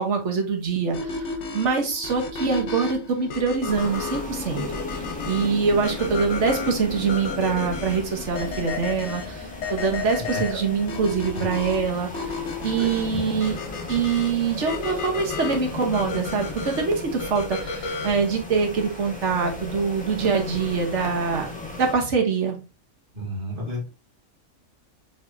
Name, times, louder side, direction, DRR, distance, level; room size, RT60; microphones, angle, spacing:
voice 1, 0.0-12.2 12.6-13.6 13.9-21.5 21.8-22.6, right 5 dB, 60° right, 3 dB, 1.4 m, -24 dB
sound 1, 0.9-18.3, left 4 dB, 65° left, 1.0 m, -33 dB
sound 2, 3.7-21.9, left 2 dB, 5° left, 0.9 m, -36 dB
voice 2, 23.2-23.9, equal, 40° right, -2 dB, 1.7 m, -31 dB
4.7 x 3.4 x 2.7 m, 0.30 s
omnidirectional pair, 1.4 m